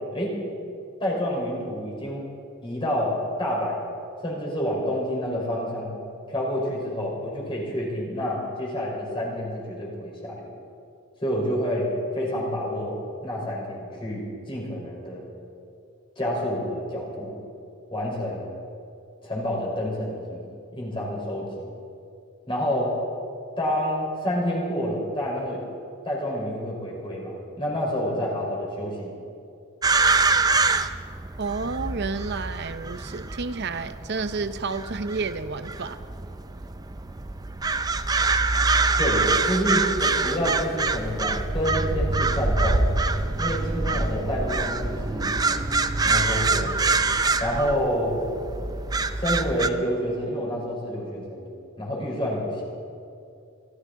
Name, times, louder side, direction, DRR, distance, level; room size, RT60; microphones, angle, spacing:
voice 1, 1.0-2.3 2.6-3.8 4.2-6.0 6.3-10.5 11.2-11.9 12.1-13.0 13.2-15.2 16.2-17.3 17.9-18.5 19.2-20.5 20.8-21.7 22.5-22.9 23.6-25.6 26.0-29.1 39.0-42.9 43.4-45.3 46.0-46.7 47.4-48.2 49.1-51.5 51.8-52.6, equal, 25° left, -4 dB, 4.1 m, -28 dB
sound 1, 29.8-49.7, right 3 dB, 20° right, 0.4 m, -25 dB
voice 2, 31.4-36.0, right 4 dB, 50° right, 12 dB, 0.7 m, -30 dB
25.5 x 14.0 x 3.8 m, 2.5 s
head